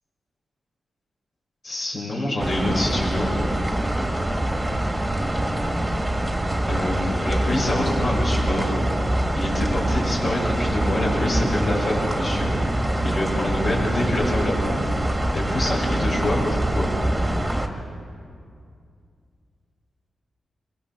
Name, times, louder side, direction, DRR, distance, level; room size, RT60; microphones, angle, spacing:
voice 1, 1.6-3.3 6.7-8.8 9.3-14.8 15.3-16.9, left 1 dB, 55° left, -4 dB, 6.3 m, -26 dB
sound 1, 2.4-17.7, right 1 dB, 15° right, 1.9 m, -24 dB
23.0 x 17.0 x 7.4 m, 2.3 s
cardioid pair, 95°, 0 cm